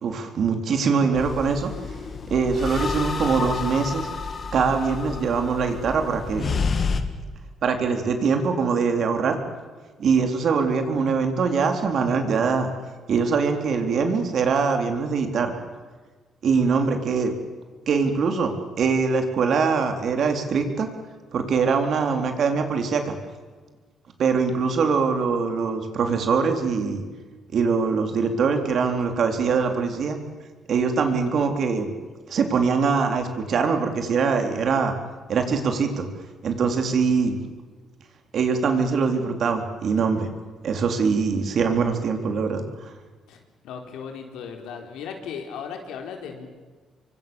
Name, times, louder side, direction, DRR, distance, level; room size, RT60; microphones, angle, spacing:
voice 1, 0.0-1.7 2.3-4.1 4.5-6.5 7.6-9.3 10.0-12.7 13.1-15.5 16.4-17.3 17.9-18.5 18.8-20.9 21.3-23.2 24.2-27.0 27.5-30.2 30.7-31.9 32.3-34.9 35.3-36.1 36.4-37.4 38.3-40.3 40.6-42.9, right 5 dB, 60° right, 5 dB, 3.9 m, -23 dB
sound 1, 1.1-7.0, left 5 dB, 45° left, 2.3 m, -29 dB
voice 2, 43.6-46.5, left 6 dB, 85° left, 4 dB, 4.1 m, -36 dB
26.0 x 23.5 x 7.1 m, 1.4 s
cardioid pair, 90°, 0 cm